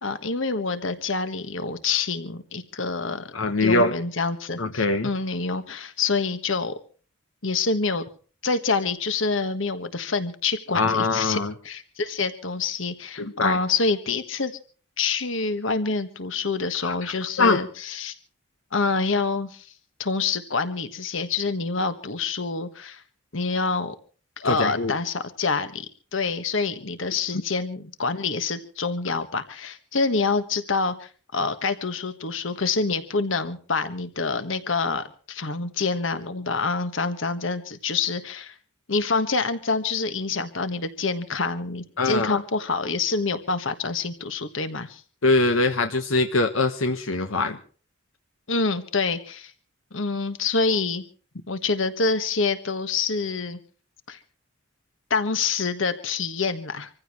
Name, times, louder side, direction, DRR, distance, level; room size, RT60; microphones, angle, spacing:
voice 1, 0.0-3.3 3.6-6.7 7.4-8.1 8.4-11.4 11.6-14.5 15.0-18.1 18.7-19.7 20.0-23.0 23.3-23.9 24.4-38.5 38.9-45.0 48.5-49.5 49.9-51.0 51.5-53.6 54.1-54.2 55.1-56.9, left 4 dB, 70° left, 10 dB, 1.5 m, -26 dB
voice 2, 3.3-3.9 4.6-5.1 10.7-11.5 13.2-13.6 16.8-17.6 24.4-24.9 42.0-42.4 45.2-47.6, left 3 dB, 90° left, 6 dB, 1.2 m, -23 dB
26.0 x 15.0 x 3.1 m, 0.40 s
head